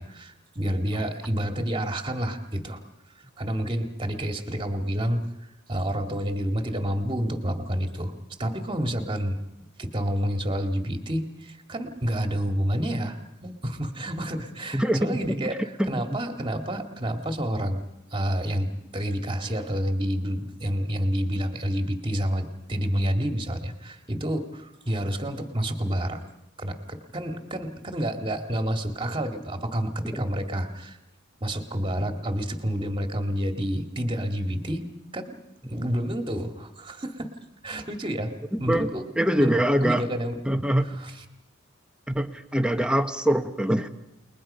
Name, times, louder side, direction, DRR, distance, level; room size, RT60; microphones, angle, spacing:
voice 1, 0.0-2.8 3.4-5.2 5.7-8.1 8.4-9.4 9.8-15.6 15.9-17.8 18.1-26.2 26.6-31.0 31.4-34.8 35.1-35.4 35.7-37.3 37.6-38.3 38.6-39.0 39.4-39.5 39.8-40.3 41.0-41.1, equal, 25° right, 5 dB, 2.1 m, -29 dB
voice 2, 14.7-16.2 30.1-30.2 38.5-38.9 39.2-40.1 40.4-40.9 42.1-43.9, equal, 5° right, 6 dB, 1.2 m, -24 dB
30.0 x 21.0 x 5.6 m, 0.89 s
head